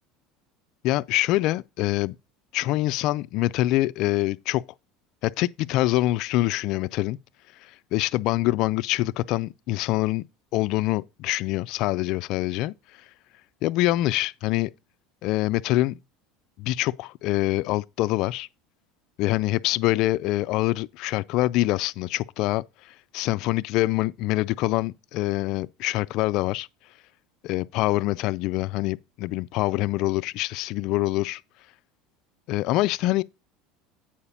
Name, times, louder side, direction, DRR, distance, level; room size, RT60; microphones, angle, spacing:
voice 1, 0.8-2.1 2.5-4.6 5.2-7.2 7.6-10.2 10.5-12.7 13.6-14.7 15.2-15.9 16.6-18.5 19.2-26.7 27.5-31.4 32.5-33.2, left 17 dB, 60° left, 0.4 m, -25 dB
8.6 x 4.8 x 5.5 m
supercardioid pair, 125°, 0 cm